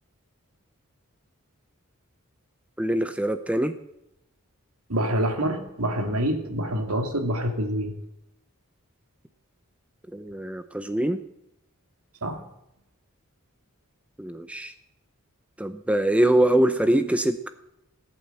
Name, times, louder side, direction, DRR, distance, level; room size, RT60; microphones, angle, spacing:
voice 1, 2.8-3.7 10.1-11.2 14.2-14.7 15.6-17.5, right 1 dB, 5° right, 10 dB, 0.6 m, -23 dB
voice 2, 4.9-7.9 12.2-12.4, equal, 80° right, 5 dB, 2.6 m, -26 dB
18.5 x 8.8 x 7.8 m, 0.85 s
head